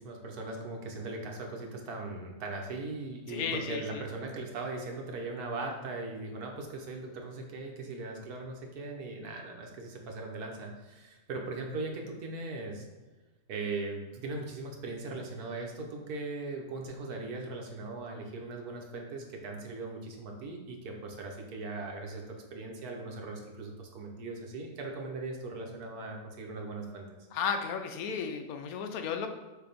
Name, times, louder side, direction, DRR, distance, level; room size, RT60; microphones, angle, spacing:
voice 1, 0.0-12.8 13.5-22.2 22.5-27.0, right 3 dB, 75° right, 1 dB, 1.5 m, -39 dB
voice 2, 3.3-4.0 27.3-29.3, left 6 dB, 70° left, 6 dB, 1.1 m, -34 dB
6.7 x 2.9 x 5.1 m, 1.2 s
omnidirectional pair, 1.6 m